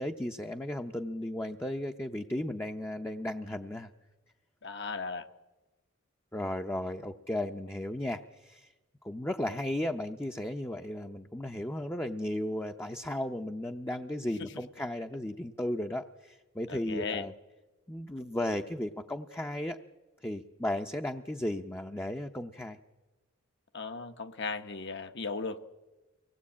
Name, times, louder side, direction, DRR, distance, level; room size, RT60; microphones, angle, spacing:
voice 1, 0.0-3.9 6.3-8.7 9.0-17.3 17.9-19.8 20.2-22.8, left 1 dB, 10° left, 4 dB, 0.7 m, -35 dB
voice 2, 4.6-5.3 14.4-14.5 16.7-17.3 23.7-25.6, left 4 dB, 60° left, 9 dB, 1.2 m, -36 dB
24.5 x 18.0 x 8.5 m, 1.2 s
head